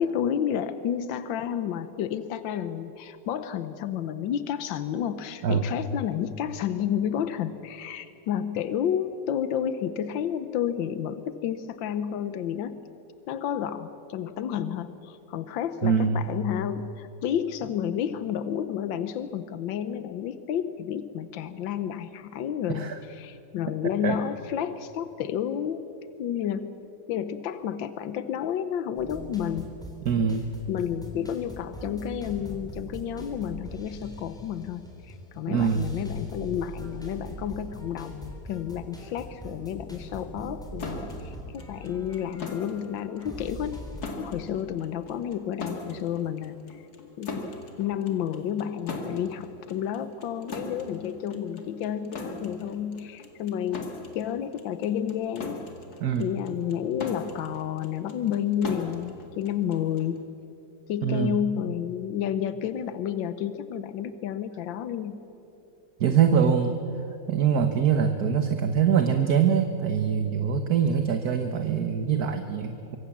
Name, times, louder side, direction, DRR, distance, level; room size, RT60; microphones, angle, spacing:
voice 1, 0.0-12.8 13.3-25.8 26.2-26.7 27.1-29.7 30.7-43.8 44.2-46.8 47.2-47.5 47.8-55.6 56.2-60.2 60.9-65.2, left 9 dB, 90° left, 12 dB, 1.6 m, -31 dB
voice 2, 15.8-16.3 22.7-23.0 24.0-24.2 30.0-30.5 35.5-35.9 56.0-56.3 61.0-61.3 66.0-66.8 67.3-73.0, right 7 dB, 60° right, 7 dB, 1.6 m, -23 dB
sound 1, 29.0-44.0, right 1 dB, ahead, 3.9 m, -42 dB
sound 2, 40.8-60.2, left 3 dB, 55° left, 2.6 m, -40 dB
24.5 x 24.5 x 7.3 m, 2.9 s
omnidirectional pair, 2.0 m